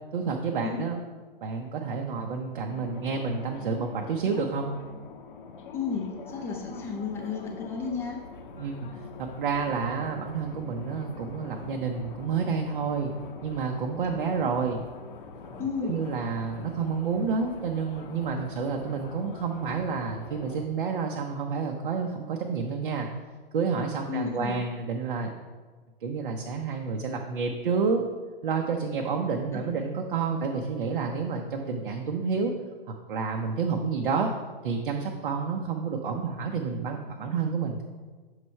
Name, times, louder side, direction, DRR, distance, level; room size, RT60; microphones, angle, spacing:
voice 1, 0.1-0.9 1.4-4.7 8.6-13.1 13.4-14.8 15.5-23.1 23.5-25.3 26.0-28.0 28.4-32.5 32.9-34.3 34.6-37.8, right 5 dB, 60° right, 2 dB, 0.7 m, -29 dB
sound 1, 2.7-20.7, left 5 dB, 55° left, 0.8 m, -44 dB
voice 2, 5.7-8.2 15.6-16.0 24.1-24.6 29.5-29.7, left 5 dB, 10° left, 0 dB, 0.6 m, -32 dB
6.7 x 3.2 x 5.4 m, 1.4 s
hypercardioid pair, 140°, 30 cm